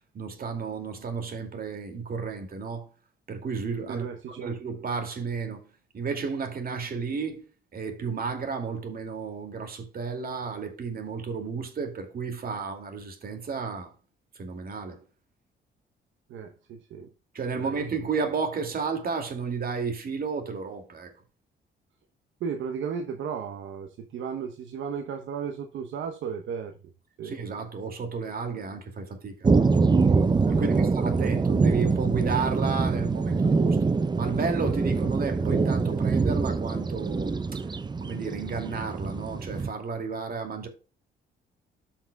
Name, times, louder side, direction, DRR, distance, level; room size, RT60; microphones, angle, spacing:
voice 1, 0.0-2.9 3.3-5.6 5.9-7.4 7.7-13.9 14.3-15.0 17.3-21.1 27.2-29.4 30.5-33.9 34.2-37.6 38.0-40.7, right 5 dB, 50° right, 2.4 m, -32 dB
voice 2, 3.9-4.5 16.3-17.1 17.5-17.8 22.4-26.8 27.2-27.4 30.5-31.3, right 6 dB, 75° right, 0.9 m, -35 dB
sound 1, 29.4-39.7, right 4 dB, 20° right, 0.6 m, -24 dB
13.5 x 5.8 x 2.3 m
cardioid pair, 90°, 20 cm